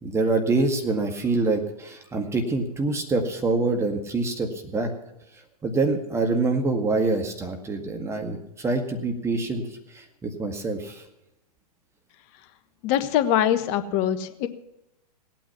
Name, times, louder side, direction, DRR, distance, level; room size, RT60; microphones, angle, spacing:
voice 1, 0.0-4.9 5.6-9.6 9.9-11.0, right 3 dB, 15° right, 4 dB, 1.9 m, -25 dB
voice 2, 12.8-14.5, left 10 dB, 35° left, 11 dB, 1.3 m, -23 dB
18.0 x 9.2 x 5.8 m, 0.88 s
figure-of-eight pair, 105°, 20 cm